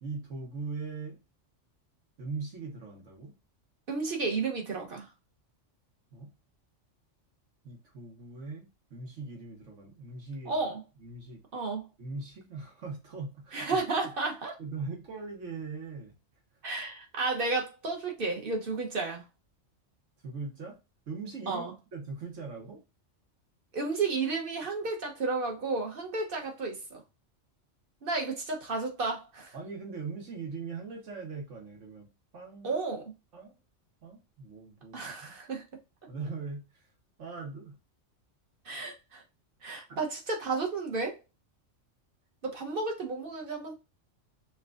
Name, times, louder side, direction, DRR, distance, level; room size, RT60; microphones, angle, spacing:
voice 1, 0.0-1.2 2.2-3.3 6.1-6.3 7.6-10.7 11.0-11.6 12.0-14.1 14.6-16.1 20.2-20.8 21.1-21.6 21.9-22.8 29.5-32.1 32.3-32.7 33.3-33.6 34.0-35.3 36.1-36.9 37.2-37.7 39.9-40.0, right 4 dB, 75° right, 1.6 m, -40 dB
voice 2, 3.9-5.1 10.5-10.8 11.5-11.8 13.5-14.5 16.6-19.2 21.5-21.7 23.7-27.0 28.0-29.5 32.6-33.1 34.9-35.6 38.6-39.2 39.6-41.2 42.4-43.7, right 3 dB, 50° right, 1.3 m, -32 dB
5.8 x 2.4 x 2.5 m
omnidirectional pair, 1.3 m